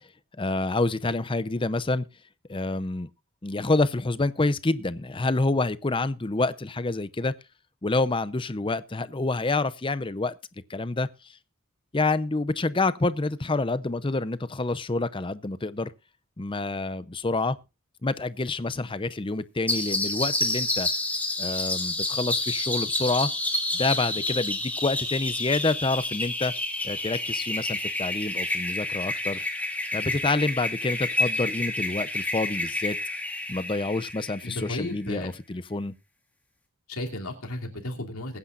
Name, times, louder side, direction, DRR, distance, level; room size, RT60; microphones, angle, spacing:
voice 1, 0.4-2.0 2.5-3.1 3.4-7.3 7.8-10.3 10.7-11.1 11.9-15.9 16.4-17.6 18.0-20.9 21.4-23.3 23.7-26.5 26.8-29.4 29.9-33.0 33.5-35.9, left 3 dB, 25° left, 0.6 m, -27 dB
sound 1, 19.7-34.9, left 2 dB, 5° left, 1.9 m, -29 dB
voice 2, 34.4-35.3 36.9-38.4, left 1 dB, 80° left, 2.8 m, -34 dB
21.5 x 9.8 x 2.5 m
head